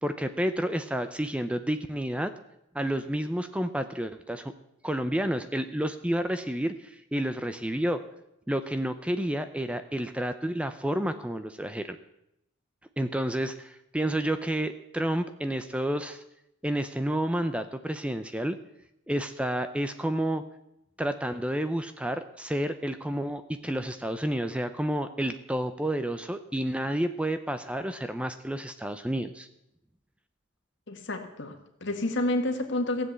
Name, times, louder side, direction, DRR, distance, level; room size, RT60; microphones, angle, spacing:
voice 1, 0.0-2.3 2.7-4.5 4.8-8.0 8.5-12.0 13.0-16.2 16.6-18.6 19.1-20.4 21.0-29.5, right 1 dB, 5° right, 9 dB, 0.5 m, -30 dB
voice 2, 30.9-33.1, left 1 dB, 60° left, 5 dB, 1.8 m, -29 dB
15.5 x 7.8 x 8.1 m, 0.82 s
head